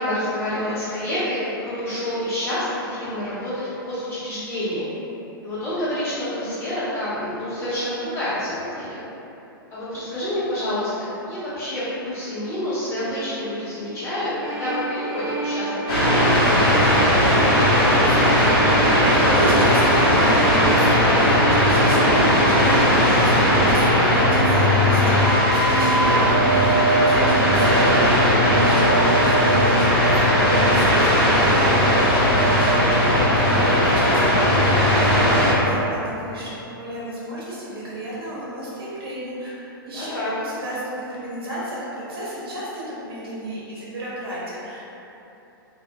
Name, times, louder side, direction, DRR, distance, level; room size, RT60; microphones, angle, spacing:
voice 1, 0.0-4.9 5.4-9.0 9.7-10.9 11.3-17.4 28.8-29.0 39.8-40.4, left 1 dB, 20° left, -14 dB, 1.4 m, -28 dB
sound 1, 14.4-31.3, right 3 dB, 20° right, 0.3 m, -29 dB
sound 2, 15.9-35.5, equal, 85° left, 1.2 m, -17 dB
voice 2, 17.6-18.6 18.8-44.8, equal, 75° right, -8 dB, 0.9 m, -32 dB
2.7 x 2.5 x 2.3 m, 3.0 s
hypercardioid pair, 125°, 12 cm